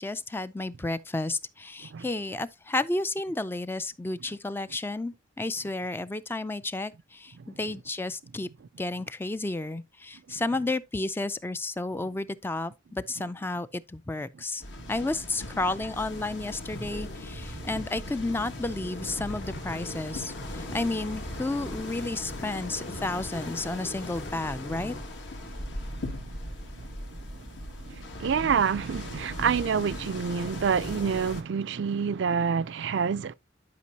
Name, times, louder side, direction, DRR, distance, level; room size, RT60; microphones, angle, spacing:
voice 1, 0.0-8.5 8.8-14.6 14.9-25.0, left 2 dB, 10° left, 0.3 m, -32 dB
sound 1, 14.6-31.4, left 1 dB, 70° left, 2.0 m, -40 dB
sound 2, 16.7-25.0, left 1 dB, 55° left, 1.3 m, -41 dB
voice 2, 25.5-27.0 27.8-33.3, right 6 dB, 65° right, 0.4 m, -28 dB
11.5 x 5.2 x 2.8 m
head